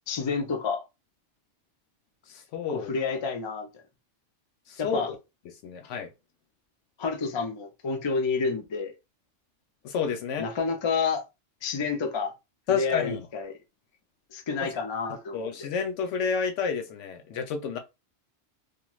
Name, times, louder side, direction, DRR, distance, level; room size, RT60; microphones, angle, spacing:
voice 1, 0.1-0.8 2.7-3.7 4.8-5.1 7.0-8.9 10.4-11.2 11.6-12.3 12.7-13.5 14.3-15.7, left 5 dB, 45° left, 0.3 m, -29 dB
voice 2, 2.3-2.9 4.7-5.2 5.6-6.1 9.8-10.5 12.7-13.3 14.6-14.7 15.1-17.8, left 6 dB, 80° left, 0.9 m, -30 dB
2.6 x 2.3 x 3.0 m
omnidirectional pair, 1.2 m